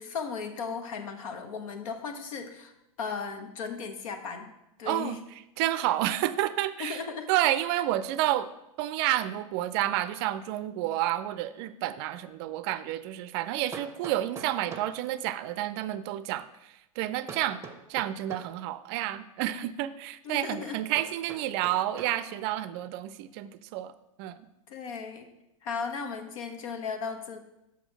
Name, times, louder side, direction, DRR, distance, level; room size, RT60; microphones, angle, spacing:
voice 1, 0.0-2.7 3.0-4.5 4.8-5.2 6.8-7.3 20.2-20.8 24.7-25.3 25.6-27.4, left 5 dB, 65° left, 6 dB, 1.2 m, -36 dB
voice 2, 4.9-5.2 5.6-7.0 7.3-8.5 8.8-17.6 17.9-23.9 24.2-24.5, right 13 dB, 45° right, 14 dB, 0.5 m, -30 dB
Hammer, 13.7-15.0 17.3-18.6 20.9-22.2, right 5 dB, 15° right, 0.8 m, -44 dB
6.2 x 5.8 x 5.9 m, 0.89 s
hypercardioid pair, 120°, 18 cm